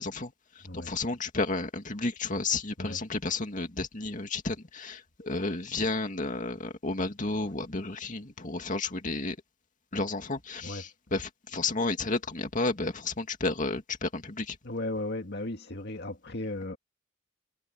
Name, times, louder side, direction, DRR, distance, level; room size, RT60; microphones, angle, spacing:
voice 1, 0.0-9.4 9.9-14.6, left 3 dB, 40° left, 2.3 m, -32 dB
voice 2, 14.6-16.8, left 2 dB, 55° left, 2.1 m, -35 dB
head